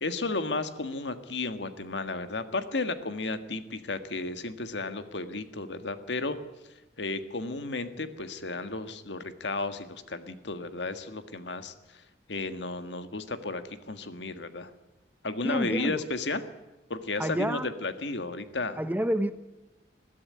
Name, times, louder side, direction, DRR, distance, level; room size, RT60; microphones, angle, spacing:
voice 1, 0.0-6.4 7.0-12.0 12.3-13.6 13.9-14.7 15.2-16.5 16.9-18.8, left 3 dB, 80° left, 10 dB, 1.7 m, -33 dB
voice 2, 15.4-16.0 17.2-17.7 18.8-19.3, equal, 10° right, 11 dB, 0.9 m, -28 dB
21.0 x 13.5 x 9.6 m, 1.1 s
head